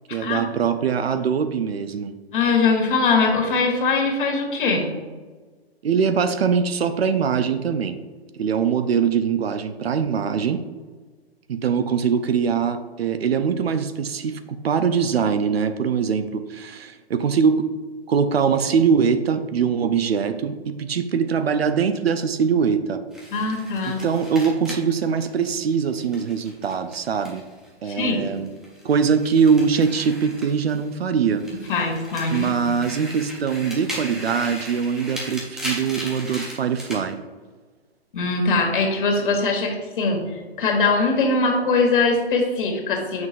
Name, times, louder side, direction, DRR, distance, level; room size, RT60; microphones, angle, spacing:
voice 1, 0.1-2.1 5.8-8.0 8.3-10.6 11.5-17.7 18.1-23.0 23.9-27.4 27.8-28.5 28.8-31.4 32.3-37.2, right 6 dB, 70° right, 10 dB, 0.6 m, -22 dB
voice 2, 2.3-4.9 23.3-24.0 27.8-28.2 31.7-32.7 38.1-40.2 40.6-43.3, left 4 dB, 55° left, 2 dB, 1.6 m, -21 dB
sound 1, 23.1-27.7 28.0-31.0 31.3-37.0, equal, ahead, 0.5 m, -37 dB
7.3 x 6.0 x 2.5 m, 1.4 s
hypercardioid pair, 135°, 32 cm